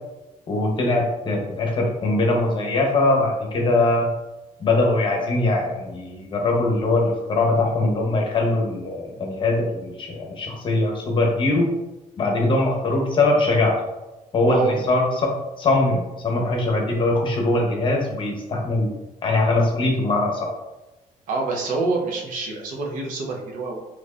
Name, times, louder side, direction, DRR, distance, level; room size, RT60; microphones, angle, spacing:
voice 1, 0.5-4.1 4.6-11.7 12.2-13.7 14.3-15.3 15.6-18.9 19.2-20.5, left 2 dB, 35° left, 0 dB, 0.8 m, -21 dB
voice 2, 14.5-14.8 21.3-23.8, right 3 dB, 70° right, 0 dB, 0.8 m, -26 dB
4.1 x 3.0 x 2.4 m, 0.99 s
cardioid pair, 155°, 14 cm